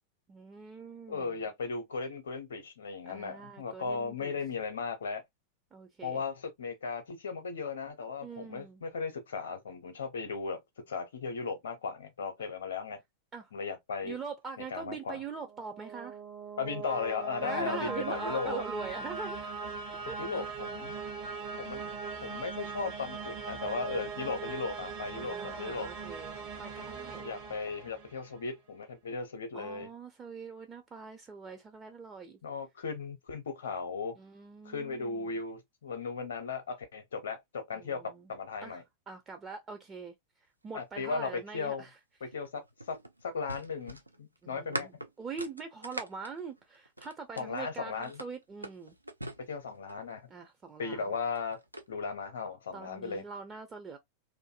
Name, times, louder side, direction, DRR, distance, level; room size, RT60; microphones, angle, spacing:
voice 1, 0.3-1.4 3.1-4.4 5.7-6.2 8.2-8.8 13.3-13.5 14.0-16.2 17.4-19.6 20.0-20.4 24.2-24.5 25.2-27.2 29.5-32.4 34.2-35.4 37.7-38.3 38.6-40.1 40.6-42.0 44.4-48.9 50.3-51.1 52.7-54.0, right 5 dB, 25° right, 0.5 m, -43 dB
voice 2, 1.1-5.2 6.0-10.6 10.9-13.0 13.5-14.2 14.7-15.2 16.6-18.6 20.2-20.9 21.6-25.9 27.1-29.9 32.4-34.1 34.6-38.8 40.7-41.8 42.2-43.0 43.2-44.9 47.4-48.2 49.5-50.2 50.8-51.6 51.9-53.2, left 5 dB, 65° left, 0.7 m, -36 dB
sound 1, 15.4-28.4, right 5 dB, 50° right, 0.9 m, -40 dB
sound 2, 42.3-47.6 48.0-50.1 51.1-51.9, right 1 dB, 85° right, 0.4 m, -42 dB
2.5 x 2.5 x 2.4 m
figure-of-eight pair, 90°, 0 cm